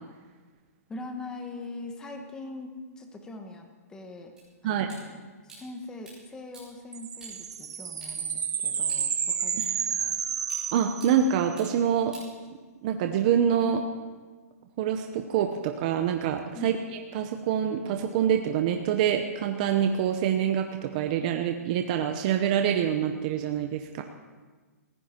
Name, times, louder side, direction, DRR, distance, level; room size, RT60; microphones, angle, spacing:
voice 1, 0.9-4.3 4.6-5.3 5.5-10.2 16.5-16.8, left 2 dB, 10° left, 4 dB, 1.2 m, -42 dB
sound 1, 4.4-13.0, right 2 dB, 5° right, 6.7 m, -54 dB
sound 2, 6.9-11.5, right 7 dB, 80° right, 1.6 m, -31 dB
voice 2, 10.7-12.1 12.8-13.8 14.8-16.8 17.1-24.0, right 9 dB, 30° right, 5 dB, 0.8 m, -26 dB
20.0 x 15.5 x 4.4 m, 1.4 s
hypercardioid pair, 170°, 9 cm